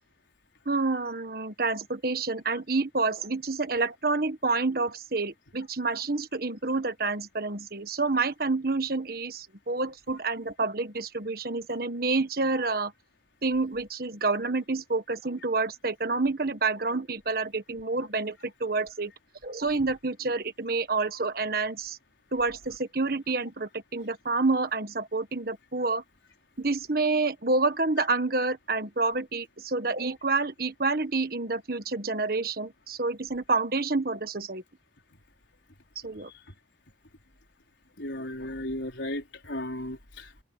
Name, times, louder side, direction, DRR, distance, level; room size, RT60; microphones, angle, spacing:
voice 1, 0.6-12.9 13.4-19.1 19.4-22.0 22.3-26.0 26.6-34.6 36.0-36.3, right 3 dB, 55° right, 1.5 m, -28 dB
voice 2, 38.0-40.4, left 1 dB, 80° left, 4.6 m, -35 dB
head